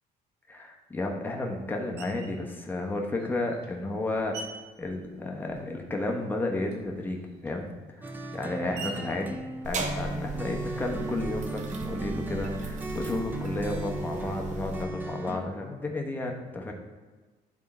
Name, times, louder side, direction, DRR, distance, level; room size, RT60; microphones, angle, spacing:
voice 1, 0.5-9.4 9.6-16.7, left 2 dB, 10° left, 1 dB, 1.1 m, -32 dB
Screech, 2.0-2.4 3.2-5.9 6.2-10.5, right 3 dB, 80° right, 1.0 m, -46 dB
sound 1, 8.0-15.4, right 2 dB, 10° right, 0.7 m, -36 dB
sound 2, 9.6-14.8, right 3 dB, 45° right, 1.0 m, -38 dB
10.5 x 3.7 x 4.3 m, 1.3 s
cardioid pair, 110°, 17 cm